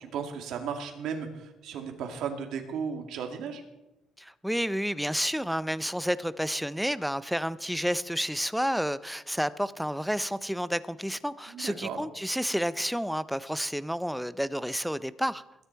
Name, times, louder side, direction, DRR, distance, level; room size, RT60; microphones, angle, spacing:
voice 1, 0.0-3.6 11.5-12.0, right 6 dB, 65° right, 2.2 m, -35 dB
voice 2, 4.2-15.4, equal, ahead, 0.4 m, -30 dB
20.5 x 10.0 x 4.6 m
cardioid pair, 160°, 0 cm